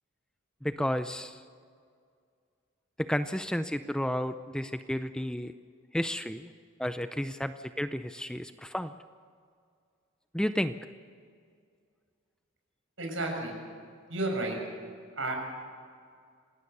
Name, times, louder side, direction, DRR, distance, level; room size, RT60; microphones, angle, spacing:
voice 1, 0.6-1.4 3.0-5.5 5.9-6.5 6.8-8.9 10.3-10.8, equal, 5° left, 10 dB, 0.5 m, -32 dB
voice 2, 13.0-13.5 14.1-14.6 15.1-15.3, right 2 dB, 70° right, 2 dB, 6.7 m, -31 dB
27.0 x 18.5 x 6.9 m, 2.2 s
head